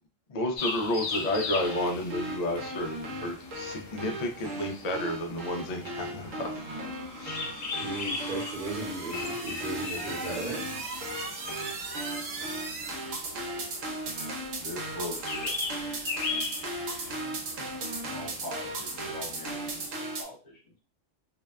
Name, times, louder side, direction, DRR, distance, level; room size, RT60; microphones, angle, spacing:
voice 1, 0.3-6.5 7.2-7.4, left 1 dB, 90° left, 3 dB, 0.3 m, -31 dB
sound 1, 0.6-19.9, left 4 dB, 70° left, 0.9 m, -40 dB
sound 2, 1.3-20.2, right 2 dB, 85° right, 1.1 m, -36 dB
voice 2, 7.8-10.7, right 1 dB, 50° right, -5 dB, 0.8 m, -36 dB
voice 3, 14.6-16.0 18.0-20.8, left 1 dB, 40° left, -2 dB, 1.0 m, -42 dB
2.6 x 2.2 x 2.2 m, 0.37 s
omnidirectional pair, 1.3 m